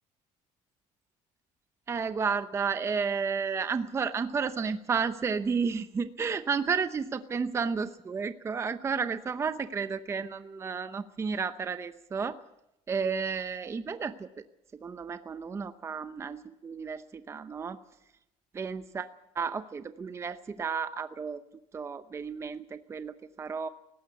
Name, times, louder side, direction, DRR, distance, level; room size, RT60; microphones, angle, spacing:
voice 1, 1.9-12.4 12.9-14.4 14.8-17.8 18.5-19.1 19.3-21.4 21.7-23.7, right 5 dB, 20° right, 11 dB, 0.7 m, -32 dB
18.5 x 15.0 x 9.3 m, 0.88 s
cardioid pair, 140°, 13 cm